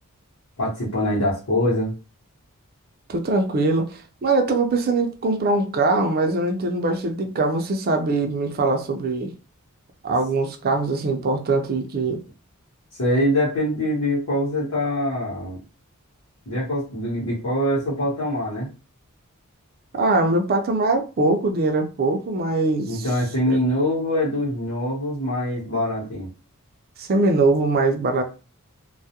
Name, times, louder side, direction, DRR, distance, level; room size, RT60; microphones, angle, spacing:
voice 1, 0.6-2.0 12.9-15.6 16.5-18.7 22.9-26.3, left 1 dB, 85° left, 1.0 m, -24 dB
voice 2, 3.1-9.3 10.0-12.2 19.9-23.1 23.5-23.6 27.0-28.2, right 2 dB, 45° right, 0.4 m, -22 dB
2.3 x 2.1 x 2.8 m
head